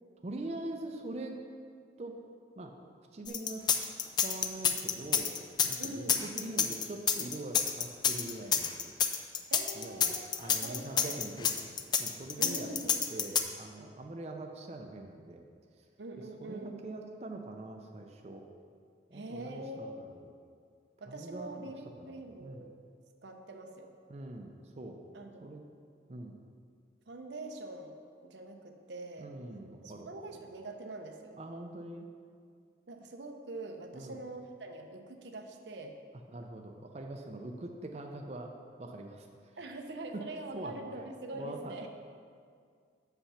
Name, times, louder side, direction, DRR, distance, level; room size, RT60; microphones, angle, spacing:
voice 1, 0.2-1.4 2.0-2.2 2.6-2.7 3.1-3.7 4.2-5.4 5.6-8.9 9.8-11.7 12.0-15.4 16.4-18.5 19.1-20.3 21.1-21.5 22.0-22.6 24.1-25.0 25.4-25.6 26.1-26.4 29.2-30.1 31.4-32.1 33.9-34.2 36.3-38.5 38.8-39.3 40.1-40.2 40.5-40.8 41.3-41.9, right 2 dB, 35° right, 3 dB, 0.5 m, -43 dB
sound 1, 3.3-13.4, left 7 dB, 25° left, 0.3 m, -28 dB
voice 2, 5.8-6.3 9.5-10.3 10.6-11.2 12.4-13.0 16.0-16.9 19.1-20.0 21.0-22.7 23.2-24.0 25.1-25.6 27.1-29.3 29.8-31.4 32.9-36.0 39.6-41.9, right 2 dB, 90° right, 4 dB, 0.8 m, -44 dB
6.9 x 5.8 x 5.6 m, 2.1 s
head